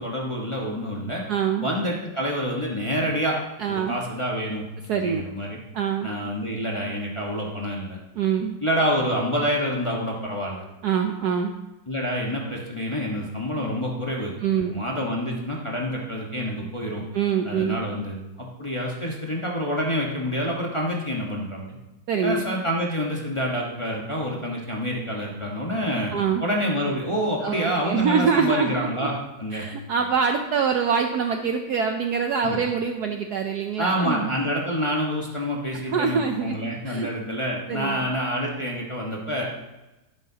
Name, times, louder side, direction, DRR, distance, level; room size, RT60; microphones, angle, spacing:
voice 1, 0.0-1.2 1.6-3.4 3.7-4.6 4.9-5.6 6.0-8.0 8.6-10.6 11.9-17.0 17.4-21.7 22.2-26.1 26.4-29.6 32.4-32.6 33.8-39.4, equal, 20° left, -3 dB, 1.2 m, -27 dB
voice 2, 1.3-1.7 3.6-4.0 4.9-5.2 5.7-6.1 8.2-8.6 10.8-11.5 14.4-14.8 17.1-17.8 22.1-22.4 26.1-26.4 27.4-29.1 29.5-34.3 35.9-36.6 36.8-37.1 37.7-38.0, right 6 dB, 65° right, 5 dB, 1.0 m, -24 dB
12.0 x 10.5 x 2.9 m, 1.0 s
omnidirectional pair, 2.2 m